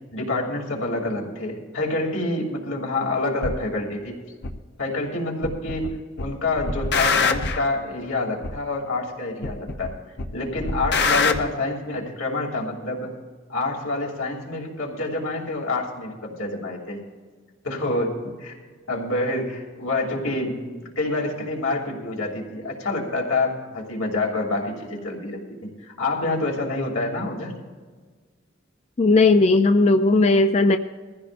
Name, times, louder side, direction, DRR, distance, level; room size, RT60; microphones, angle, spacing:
voice 1, 0.1-4.2 4.8-9.9 10.3-13.1 13.5-17.0 17.6-18.6 18.9-27.5, left 2 dB, 90° left, -1 dB, 2.9 m, -27 dB
sound 1, 3.4-3.6 4.4-4.5 5.4-5.9 6.2-7.7 8.4-8.5 9.4-9.9 10.2-11.4, left 4 dB, 55° left, 0.9 m, -23 dB
voice 2, 29.0-30.8, left 3 dB, 30° left, 7 dB, 0.4 m, -17 dB
21.5 x 15.0 x 2.6 m, 1.5 s
head